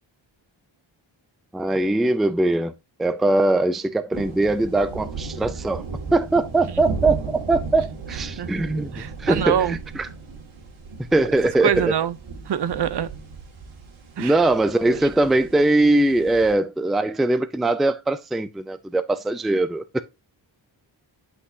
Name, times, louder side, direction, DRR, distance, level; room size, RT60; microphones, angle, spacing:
voice 1, 1.5-2.7 3.0-5.8 6.1-10.1 11.1-11.9 14.2-20.0, right 2 dB, ahead, 0.4 m, -21 dB
sound 1, 4.1-16.5, right 4 dB, 85° right, 2.3 m, -35 dB
voice 2, 8.9-9.8 11.6-12.1 12.5-13.1 14.2-14.3, right 9 dB, 60° right, 0.7 m, -24 dB
8.1 x 5.6 x 2.7 m
wide cardioid pair, 105°, 47 cm